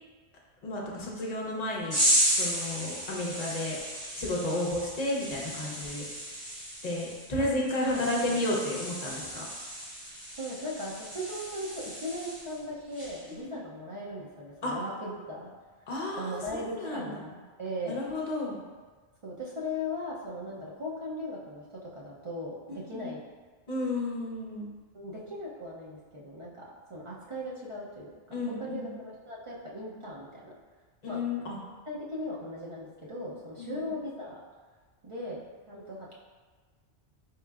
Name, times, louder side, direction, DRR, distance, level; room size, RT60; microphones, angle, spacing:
voice 1, 0.6-2.0 2.3-3.8 4.2-6.0 6.8-9.4 13.4-13.5 14.6-14.7 15.9-17.2 17.9-18.6 22.7-23.2 23.7-24.7 28.3-28.9 31.0-31.6 33.6-33.8, left 2 dB, 45° left, -3 dB, 0.7 m, -32 dB
sound 1, 1.9-12.6 12.9-13.3, equal, 15° left, 1.1 m, -33 dB
voice 2, 10.4-15.5 16.1-17.3 17.6-18.0 19.2-23.2 24.9-28.1 28.5-30.5 31.1-31.2 31.9-34.4 35.0-35.4 35.7-36.2, left 1 dB, 45° right, -6 dB, 0.4 m, -38 dB
4.1 x 3.1 x 2.3 m, 1.4 s
omnidirectional pair, 1.1 m